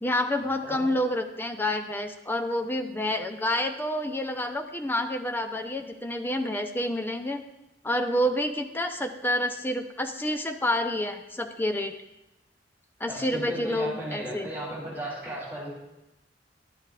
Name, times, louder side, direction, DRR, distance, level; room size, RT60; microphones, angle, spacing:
voice 1, 0.0-7.4 7.8-11.9 13.0-14.5, left 1 dB, 10° left, 5 dB, 0.5 m, -28 dB
voice 2, 13.1-15.7, right 1 dB, 10° right, -7 dB, 3.2 m, -35 dB
12.0 x 8.9 x 2.4 m, 0.94 s
head